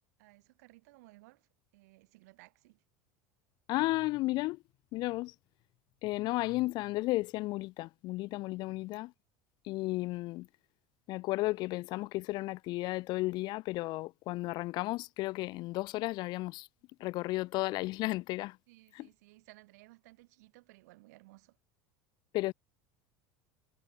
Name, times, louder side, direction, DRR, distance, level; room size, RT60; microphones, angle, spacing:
voice 1, 0.2-2.8 8.6-8.7 18.7-21.6, right 22 dB, 75° right, 5.6 m, -59 dB
voice 2, 3.7-4.6 4.9-5.3 6.0-9.1 9.6-10.5 11.1-16.7 17.0-18.6 18.9-19.1 22.3-22.5, left 19 dB, 55° left, 0.7 m, -33 dB
supercardioid pair, 100°, 9 cm